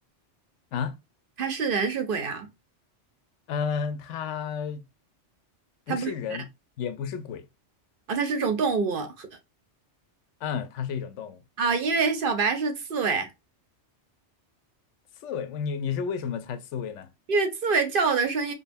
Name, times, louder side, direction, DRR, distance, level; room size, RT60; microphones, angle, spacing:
voice 1, 1.4-2.5 5.9-6.4 8.1-9.3 11.6-13.3 17.3-18.5, right 4 dB, 55° right, 0.7 m, -26 dB
voice 2, 3.5-4.8 5.9-6.5 6.8-7.5 10.4-11.4 15.2-17.1, left 7 dB, 85° left, 0.9 m, -31 dB
5.3 x 2.0 x 2.5 m
omnidirectional pair, 1.2 m